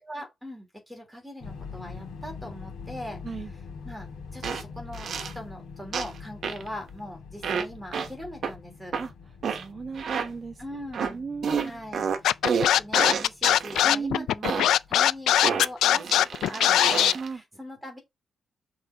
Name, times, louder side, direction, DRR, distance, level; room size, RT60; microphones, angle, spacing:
voice 1, 0.1-3.2 3.8-8.9 10.6-11.2 11.5-16.1 16.4-18.0, equal, ahead, 3.1 m, -41 dB
sound 1, 1.4-15.4, left 5 dB, 70° left, 2.0 m, -44 dB
sound 2, 4.4-4.6 4.9-5.3 5.9-6.2 6.4-6.7 7.4-7.7 7.9-8.1 8.4-8.5 8.9-9.1 9.4-9.6 10.0-10.3 10.9-11.1 11.4-13.8 14.4-14.7 15.4-17.3, right 6 dB, 50° right, 1.0 m, -29 dB
voice 2, 9.5-10.6 11.0-11.8 13.8-14.3 17.1-17.4, right 5 dB, 25° right, 0.4 m, -35 dB
Scratching (performance technique), 12.2-17.1, left 11 dB, 90° left, 0.3 m, -20 dB
6.2 x 4.0 x 5.5 m
cardioid pair, 160°, 0 cm